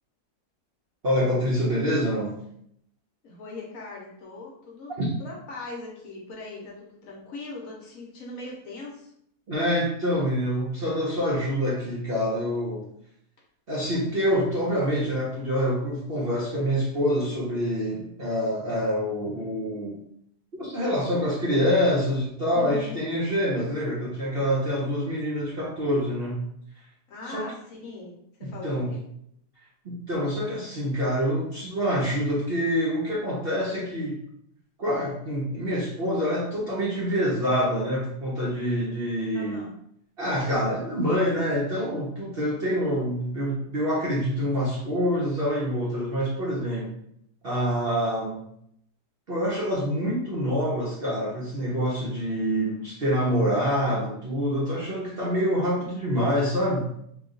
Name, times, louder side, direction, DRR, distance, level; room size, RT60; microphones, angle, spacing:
voice 1, 1.0-2.3 5.0-5.1 9.5-12.9 13.7-20.0 20.5-26.4 27.3-27.5 28.4-28.9 29.8-34.2 34.8-39.6 40.2-46.9 47.4-48.4 49.3-56.9, equal, 50° right, -6 dB, 0.7 m, -26 dB
voice 2, 3.2-9.1 22.5-23.0 27.1-29.0 39.3-39.7, left 2 dB, 60° left, -2 dB, 1.1 m, -40 dB
3.0 x 2.3 x 3.7 m, 0.71 s
omnidirectional pair, 1.7 m